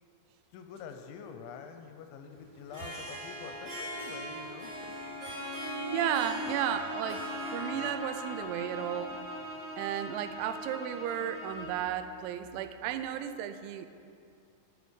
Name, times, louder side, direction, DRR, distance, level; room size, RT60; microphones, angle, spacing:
voice 1, 0.5-5.0, left 6 dB, 80° left, 6 dB, 2.8 m, -46 dB
Harp, 2.5-9.9, equal, 30° right, 2.4 m, -40 dB
voice 2, 5.9-9.2 9.8-13.9, right 10 dB, 80° right, 10 dB, 2.8 m, -34 dB
Bowed string instrument, 6.2-11.9, left 1 dB, 60° right, 1.0 m, -42 dB
12.5 x 6.8 x 6.3 m, 2.4 s
omnidirectional pair, 5.6 m